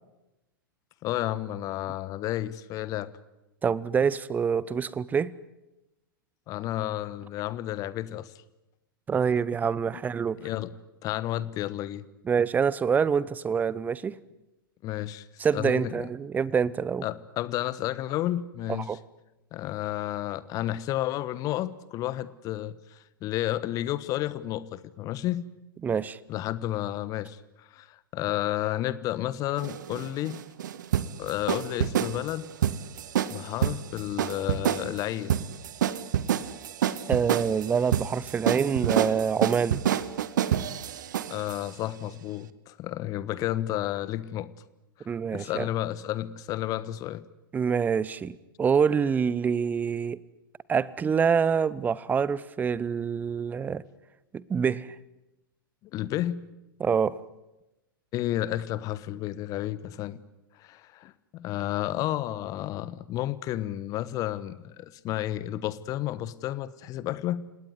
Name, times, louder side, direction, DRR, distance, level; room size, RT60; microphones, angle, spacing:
voice 1, 1.0-3.1 6.5-8.3 9.9-10.0 10.4-10.7 11.0-12.0 14.8-15.3 15.5-16.1 17.0-19.0 19.5-25.5 26.3-30.4 31.2-32.5 33.3-35.4 41.3-44.5 45.0-47.2 55.9-56.5 58.1-60.2 60.6-67.4, left 14 dB, 30° left, 17 dB, 1.2 m, -31 dB
voice 2, 3.6-5.3 9.1-10.4 12.3-14.1 15.4-17.1 18.7-19.0 25.8-26.2 37.1-39.8 45.1-45.7 47.5-50.2 50.7-53.8 54.3-54.9 56.8-57.1, right 6 dB, 15° right, 21 dB, 0.9 m, -26 dB
sound 1, 29.6-41.6, right 10 dB, 55° right, 1.4 m, -28 dB
29.5 x 18.5 x 9.5 m, 0.98 s
figure-of-eight pair, 100°, 12 cm